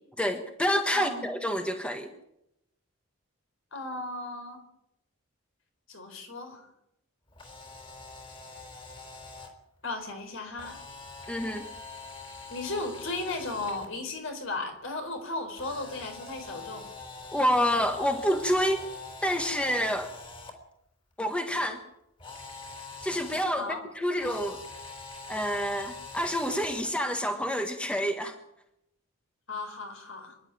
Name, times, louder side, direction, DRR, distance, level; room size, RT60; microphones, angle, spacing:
voice 1, 0.2-2.1 11.3-11.7 17.3-18.8 19.2-20.1 21.2-21.8 23.0-24.6 25.3-28.4, equal, 5° left, 5 dB, 1.4 m, -28 dB
voice 2, 0.9-1.6 3.7-4.6 5.9-6.7 9.8-10.8 12.5-16.9 23.5-23.8 29.5-30.4, left 2 dB, 65° left, 6 dB, 4.4 m, -36 dB
Camera, 7.3-9.5 10.6-13.9 15.6-20.5 22.2-23.5 24.2-26.9, left 4 dB, 25° left, 3.8 m, -44 dB
25.5 x 11.5 x 9.1 m, 0.82 s
head